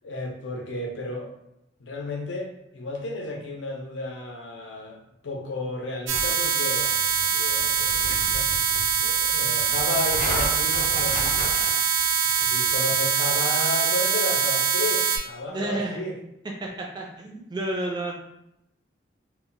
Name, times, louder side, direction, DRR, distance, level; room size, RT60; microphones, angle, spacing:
voice 1, 0.0-1.3 1.8-8.5 8.9-11.6 12.4-16.2, left 2 dB, 70° left, 1 dB, 0.6 m, -33 dB
sound 1, 6.1-13.4, left 1 dB, 40° left, 0.7 m, -35 dB
sound 2, 6.1-15.2, right 7 dB, 90° right, 0.4 m, -23 dB
voice 2, 15.5-16.0 16.6-18.2, right 1 dB, 20° right, -1 dB, 0.4 m, -30 dB
2.1 x 2.1 x 3.7 m, 0.82 s
head